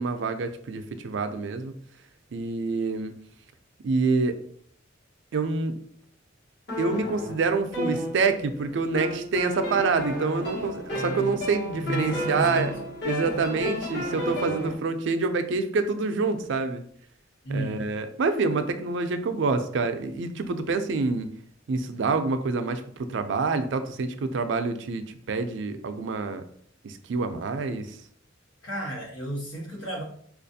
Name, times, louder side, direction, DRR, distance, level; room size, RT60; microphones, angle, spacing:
voice 1, 0.0-1.7 2.3-3.1 3.8-4.4 5.3-5.7 6.8-12.7 13.0-16.8 17.5-21.3 21.7-22.8 23.1-26.4 26.8-28.0, right 4 dB, 65° right, 9 dB, 0.4 m, -27 dB
sound 1, 6.7-8.5 8.9-14.7, left 1 dB, 60° left, 1.1 m, -31 dB
voice 2, 11.7-12.7 17.4-17.9 28.6-30.0, right 1 dB, 85° left, -1 dB, 1.1 m, -32 dB
4.6 x 2.4 x 2.7 m, 0.62 s
head